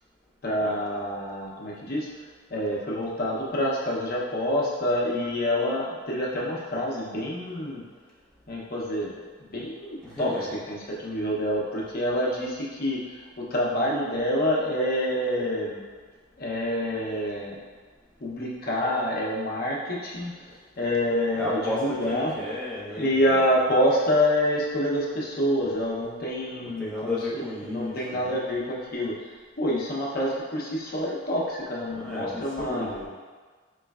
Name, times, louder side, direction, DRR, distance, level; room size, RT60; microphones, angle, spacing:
voice 1, 0.4-2.1 2.5-7.8 8.5-9.1 9.4-15.8 16.4-17.6 18.2-20.3 20.8-22.3 22.9-32.9, equal, 50° left, -4 dB, 0.7 m, -27 dB
voice 2, 10.0-10.5 21.3-23.3 26.8-28.2 31.9-33.1, left 1 dB, 5° left, -8 dB, 0.8 m, -32 dB
4.3 x 3.1 x 2.3 m, 1.5 s
head